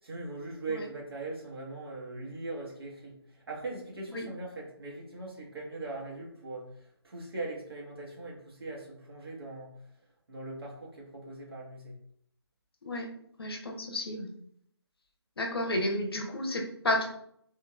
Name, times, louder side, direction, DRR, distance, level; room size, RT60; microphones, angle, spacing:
voice 1, 0.0-9.9 10.3-12.0, right 2 dB, 60° right, -4 dB, 1.3 m, -40 dB
voice 2, 13.4-14.3 15.4-17.1, left 1 dB, 60° left, 3 dB, 0.7 m, -31 dB
3.5 x 2.8 x 2.3 m, 0.69 s
figure-of-eight pair, 175°, 14 cm